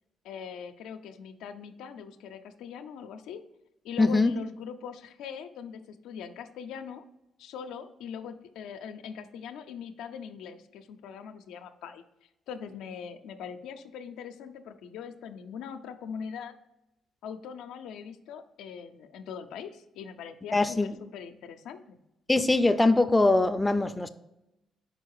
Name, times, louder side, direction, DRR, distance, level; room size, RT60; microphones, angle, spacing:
voice 1, 0.2-3.4 3.8-7.0 7.4-12.0 12.5-16.5 17.2-22.0, left 7 dB, 90° left, 7 dB, 0.4 m, -41 dB
voice 2, 4.0-4.4 20.5-20.9 22.3-24.1, left 2 dB, 10° left, 9 dB, 0.4 m, -22 dB
5.0 x 4.6 x 4.7 m, 0.90 s
cardioid pair, 90°, 0 cm